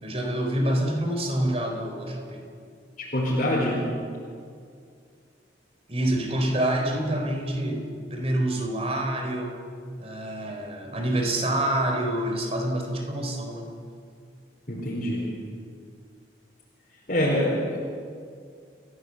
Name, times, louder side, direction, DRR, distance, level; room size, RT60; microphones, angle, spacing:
voice 1, 0.0-2.4 5.9-7.8 8.1-9.6 10.0-13.8, right 1 dB, 35° right, 3 dB, 4.1 m, -27 dB
voice 2, 3.0-3.8 14.7-15.3 17.1-17.8, left 1 dB, 45° left, -5 dB, 4.6 m, -25 dB
29.5 x 16.0 x 8.1 m, 2.3 s
head